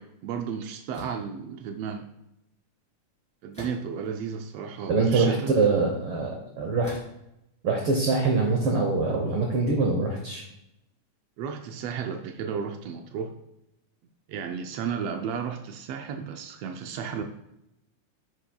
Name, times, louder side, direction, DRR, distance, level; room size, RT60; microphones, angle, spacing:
voice 1, 0.0-2.1 3.4-5.6 11.4-13.3 14.3-17.2, right 6 dB, 90° right, 5 dB, 1.4 m, -33 dB
sound 1, 0.9-1.3 3.5-4.1 4.8-4.9 6.8-7.2, equal, ahead, 2.5 m, -43 dB
voice 2, 4.9-7.0 7.6-10.4, right 3 dB, 65° right, 1 dB, 1.4 m, -24 dB
10.5 x 7.4 x 2.3 m, 0.85 s
omnidirectional pair, 3.5 m